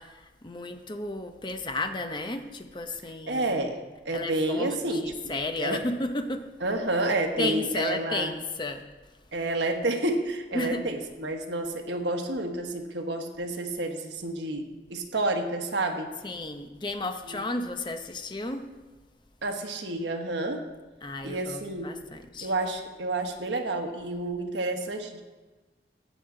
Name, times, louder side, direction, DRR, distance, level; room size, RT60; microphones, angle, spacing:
voice 1, 0.0-3.6 4.1-4.8 5.0-6.5 7.4-8.8 10.5-10.8 16.2-18.7 21.0-22.5, left 2 dB, 25° left, 7 dB, 0.8 m, -33 dB
voice 2, 3.3-5.9 6.6-8.3 9.3-16.1 17.3-17.4 19.4-20.7 21.2-22.0 22.4-25.2, right 2 dB, 80° right, 4 dB, 1.3 m, -30 dB
14.5 x 8.5 x 3.8 m, 1.2 s
head